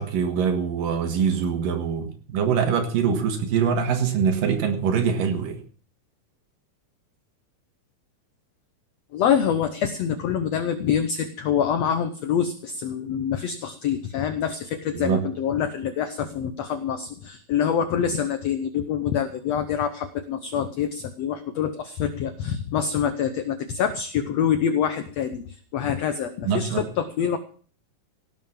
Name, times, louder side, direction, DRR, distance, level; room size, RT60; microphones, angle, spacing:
voice 1, 0.0-5.6 14.9-15.2 26.5-26.8, right 7 dB, 85° right, 4 dB, 3.4 m, -23 dB
voice 2, 9.1-27.4, left 8 dB, 70° left, 10 dB, 1.7 m, -26 dB
17.5 x 7.7 x 7.2 m, 0.43 s
omnidirectional pair, 3.8 m